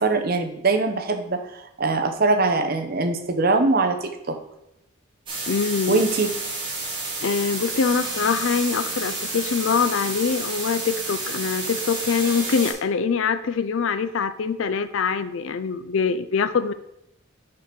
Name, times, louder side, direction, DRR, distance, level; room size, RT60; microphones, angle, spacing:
voice 1, 0.0-4.4 5.9-6.3, right 3 dB, 45° right, 6 dB, 0.8 m, -22 dB
sound 1, 5.3-12.7, right 2 dB, 25° right, 2.0 m, -30 dB
voice 2, 5.5-6.0 7.2-16.7, left 5 dB, 65° left, 12 dB, 0.4 m, -24 dB
5.6 x 5.1 x 5.8 m, 0.84 s
head